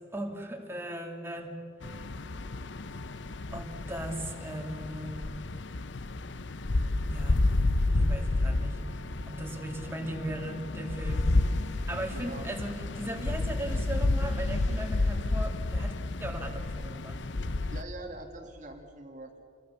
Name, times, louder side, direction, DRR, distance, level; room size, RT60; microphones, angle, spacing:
voice 1, 0.0-2.1 2.4-2.5 3.5-5.7 7.0-7.5 7.9-11.5 11.9-15.9 16.2-17.3, right 1 dB, 15° right, 2 dB, 2.4 m, -38 dB
sound 1, 1.8-17.8, left 2 dB, 75° left, 0.8 m, -30 dB
sound 2, 11.0-16.3, left 1 dB, 40° left, 2.6 m, -53 dB
voice 2, 12.1-12.5 17.7-19.4, right 2 dB, 40° right, 3 dB, 1.8 m, -43 dB
28.5 x 22.0 x 6.9 m, 2.6 s
head